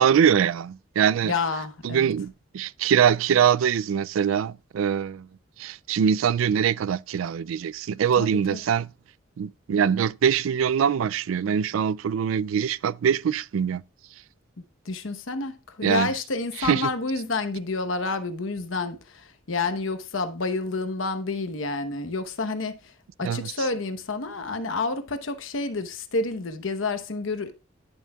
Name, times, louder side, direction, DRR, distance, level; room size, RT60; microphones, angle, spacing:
voice 1, 0.0-1.3 1.8-5.3 5.6-8.9 9.4-13.8 15.8-16.1 16.6-16.9 23.2-23.5, right 8 dB, 90° right, 0.3 m, -23 dB
voice 2, 1.2-2.1 8.2-8.6 14.8-22.8 23.2-27.5, left 3 dB, 85° left, 1.0 m, -29 dB
11.0 x 7.1 x 2.3 m
head